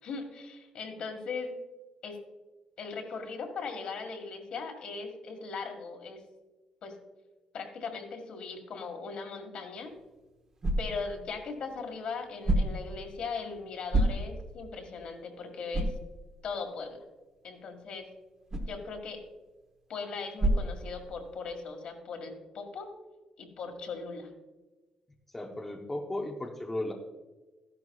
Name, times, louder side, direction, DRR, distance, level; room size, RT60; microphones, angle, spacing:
voice 1, 0.0-1.5 2.0-2.2 2.8-6.2 6.8-7.0 7.5-9.9 10.8-15.9 16.4-17.0 17.4-18.1 18.7-19.2 19.9-22.9 23.4-24.3, left 4 dB, 55° left, 4 dB, 1.7 m, -39 dB
sound 1, 9.7-21.5, right 1 dB, 30° right, 1.1 m, -34 dB
voice 2, 25.3-26.9, left 1 dB, 10° left, 1 dB, 0.7 m, -35 dB
14.0 x 11.0 x 2.3 m, 1.2 s
cardioid pair, 175°, 2 cm